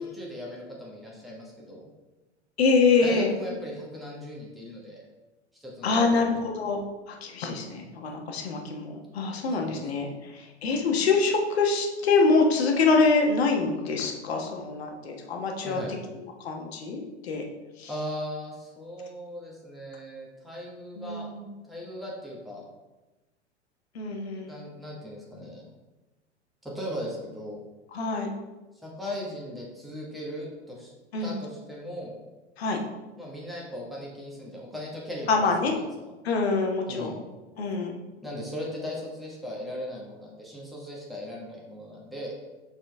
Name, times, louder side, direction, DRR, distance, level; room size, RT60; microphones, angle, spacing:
voice 1, 0.0-1.8 3.0-5.0 5.5-6.4 9.5-9.9 15.6-15.9 17.9-21.3 21.7-22.7 24.4-25.7 26.6-27.6 28.8-30.9 31.2-32.1 33.2-35.8 36.9-37.2 38.2-42.3, equal, ahead, -4 dB, 1.3 m, -38 dB
voice 2, 2.6-3.3 5.8-6.8 7.1-17.5 17.8-17.9 21.0-21.5 23.9-24.5 27.9-28.3 31.1-31.3 32.6-32.8 35.3-35.7 36.2-37.1 37.6-37.9, left 4 dB, 60° left, 2 dB, 1.3 m, -25 dB
7.6 x 4.4 x 3.4 m, 1.1 s
figure-of-eight pair, 95°, 35 cm